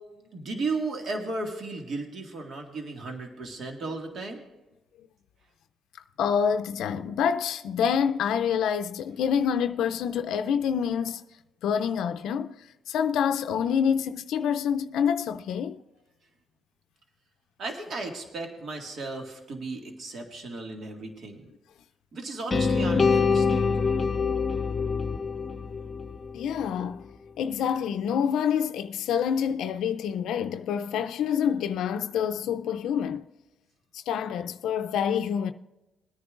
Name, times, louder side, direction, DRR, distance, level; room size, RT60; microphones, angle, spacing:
voice 1, 0.3-4.4 17.6-21.5 22.1-23.6, right 3 dB, 55° right, 1.9 m, -35 dB
voice 2, 6.2-11.2 11.6-12.5 12.9-15.8 22.9-23.1 26.3-27.0 27.4-33.2 33.9-35.5, left 8 dB, 80° left, 0.4 m, -27 dB
sound 1, 22.5-26.6, left 5 dB, 40° left, 0.7 m, -25 dB
21.5 x 9.7 x 2.5 m
cardioid pair, 90°, 0 cm